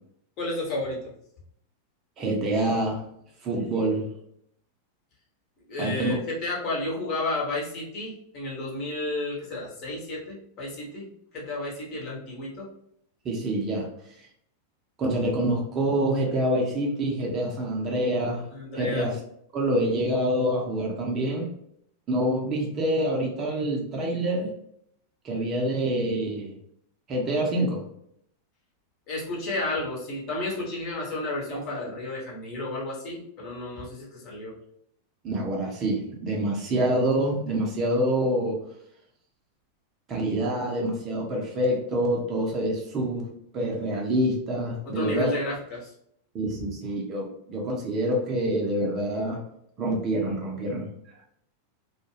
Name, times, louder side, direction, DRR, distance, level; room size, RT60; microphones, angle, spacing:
voice 1, 0.4-1.0 5.7-12.7 18.5-19.1 29.1-34.6 44.8-45.9, left 2 dB, 40° left, -4 dB, 1.1 m, -32 dB
voice 2, 2.2-3.1 3.4-4.1 5.8-6.2 13.2-13.9 15.0-18.5 18.7-19.2 19.5-21.5 22.1-24.5 25.2-26.5 27.1-27.8 31.5-31.8 35.2-38.6 40.1-43.3 43.5-45.3 46.3-49.4 49.8-50.9, right 1 dB, 30° right, -1 dB, 0.7 m, -26 dB
2.4 x 2.2 x 3.1 m, 0.72 s
figure-of-eight pair, 90°, 0 cm